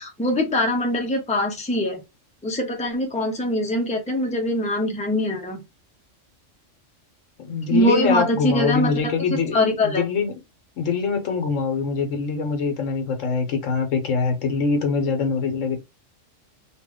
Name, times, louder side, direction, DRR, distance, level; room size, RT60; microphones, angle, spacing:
voice 1, 0.0-2.0 2.4-5.6 7.7-9.1 9.5-10.0, left 1 dB, 5° left, 0.6 m, -23 dB
voice 2, 7.4-9.6 9.8-10.3 10.8-15.8, left 5 dB, 90° left, 1.2 m, -23 dB
3.0 x 2.5 x 3.4 m
omnidirectional pair, 1.3 m